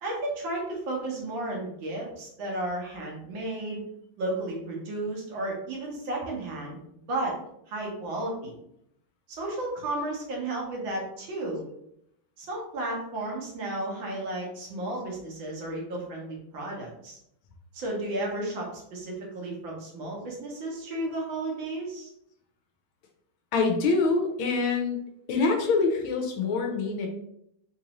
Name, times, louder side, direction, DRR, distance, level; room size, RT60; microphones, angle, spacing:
voice 1, 0.0-3.8 4.2-6.8 7.1-7.4 7.7-8.5 9.4-11.6 12.4-17.2 17.7-22.1, right 2 dB, 70° right, -2 dB, 1.6 m, -33 dB
voice 2, 23.5-25.0 25.3-27.1, left 4 dB, 75° left, 1 dB, 1.4 m, -25 dB
4.0 x 2.6 x 2.9 m, 0.77 s
omnidirectional pair, 2.3 m